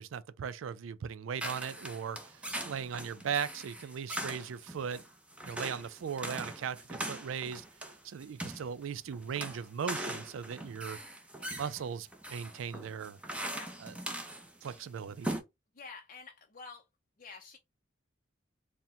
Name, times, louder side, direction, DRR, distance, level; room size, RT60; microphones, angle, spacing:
voice 1, 0.0-5.0 5.4-7.6 8.0-11.0 11.6-13.2 13.8-13.9 14.6-15.3, right 7 dB, 80° right, 0.4 m, -38 dB
sound 1, 1.4-14.8 15.1-15.4, right 1 dB, 5° right, 0.7 m, -41 dB
voice 2, 13.5-13.8 15.7-16.9 17.2-17.6, left 4 dB, 45° left, 0.5 m, -49 dB
4.3 x 2.1 x 3.6 m
head